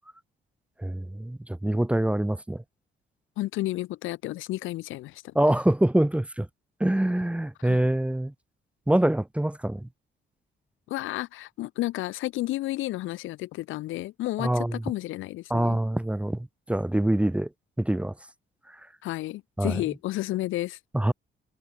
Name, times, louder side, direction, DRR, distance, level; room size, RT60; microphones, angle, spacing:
voice 1, 0.8-2.6 5.3-6.5 6.8-8.3 8.9-9.9 14.4-14.8 15.5-17.5 17.8-18.1 19.6-19.7 20.9-21.1, right 1 dB, 5° right, 0.7 m, -25 dB
voice 2, 3.4-5.3 7.6-7.8 10.9-15.8 19.0-20.8, left 16 dB, 85° left, 0.6 m, -32 dB
cardioid pair, 90°, 20 cm